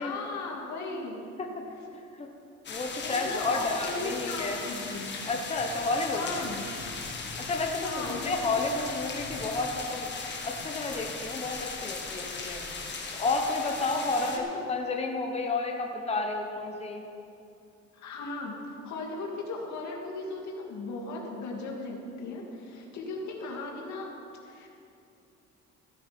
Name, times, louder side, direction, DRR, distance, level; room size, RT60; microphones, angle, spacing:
voice 1, 0.0-1.2 2.9-5.2 6.1-6.6 7.8-8.4 14.2-14.5 17.9-24.1 24.4-24.7, left 3 dB, 75° left, -1 dB, 2.4 m, -37 dB
voice 2, 1.9-2.3 2.7-4.6 5.3-6.4 7.4-10.1 10.4-12.6 13.1-17.0, left 3 dB, 20° left, 2 dB, 1.0 m, -31 dB
sound 1, 2.6-14.4, left 4 dB, 40° left, 1.8 m, -38 dB
16.0 x 10.0 x 5.2 m, 2.7 s
cardioid pair, 125°, 29 cm